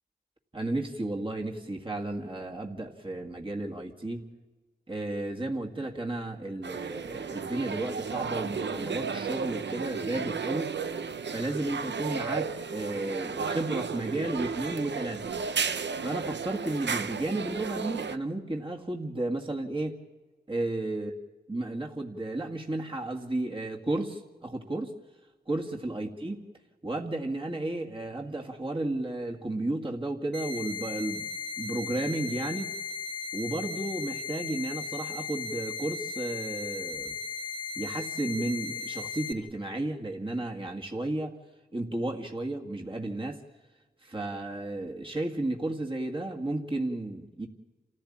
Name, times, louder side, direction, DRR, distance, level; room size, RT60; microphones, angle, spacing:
voice 1, 0.5-4.2 4.9-10.7 11.3-15.3 16.0-20.0 20.5-21.1 21.5-24.9 25.5-26.4 26.8-31.3 31.6-32.7 33.3-37.2 37.8-41.3 41.7-43.4 44.0-47.5, right 2 dB, 30° right, 1 dB, 1.9 m, -33 dB
sound 1, 6.6-18.2, right 5 dB, 80° right, 0.8 m, -34 dB
sound 2, 30.3-39.3, left 5 dB, 75° left, 1.7 m, -36 dB
28.0 x 15.0 x 8.7 m, 1.3 s
wide cardioid pair, 60°, 18 cm